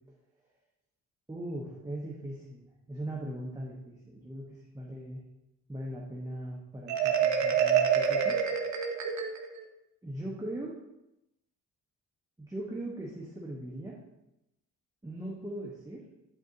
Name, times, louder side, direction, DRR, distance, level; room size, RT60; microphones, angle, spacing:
voice 1, 1.3-5.2 5.7-8.4 10.0-10.7 12.4-14.0 15.0-16.1, right 1 dB, 10° right, -3 dB, 1.3 m, -39 dB
Marimba xylophone, 6.9-9.7, right 7 dB, 70° right, 1.0 m, -27 dB
12.0 x 4.6 x 2.9 m, 0.90 s
cardioid pair, 90°, 30 cm